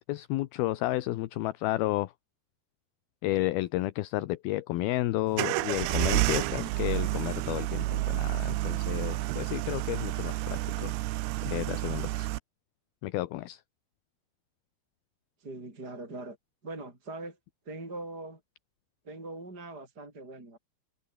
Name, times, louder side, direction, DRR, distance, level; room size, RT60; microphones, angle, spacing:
voice 1, 0.1-2.1 3.2-11.0 11.4-12.3 13.0-13.6, left 17 dB, 75° left, 2.8 m, -32 dB
sound 1, 5.3-12.4, right 18 dB, 80° right, 2.8 m, -30 dB
voice 2, 15.4-16.4 16.6-17.4 17.7-18.4 19.0-20.6, right 2 dB, 25° right, 6.3 m, -42 dB
omnidirectional pair, 4.6 m